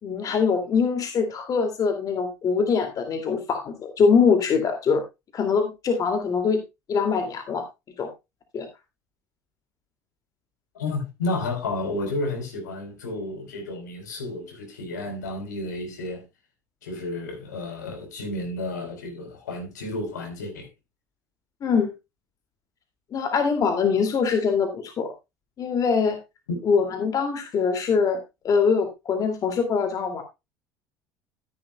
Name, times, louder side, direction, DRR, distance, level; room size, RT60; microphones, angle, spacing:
voice 1, 0.0-5.0 5.3-6.6 6.9-7.6 8.0-8.1 8.5-8.7 21.6-21.9 23.1-25.1 25.6-26.2 26.6-30.2, left 5 dB, 40° left, 2.3 m, -23 dB
voice 2, 10.7-16.2 16.8-20.7 26.5-26.6, left 2 dB, 75° left, 3.9 m, -31 dB
12.5 x 10.5 x 2.2 m
figure-of-eight pair, 70°, 9 cm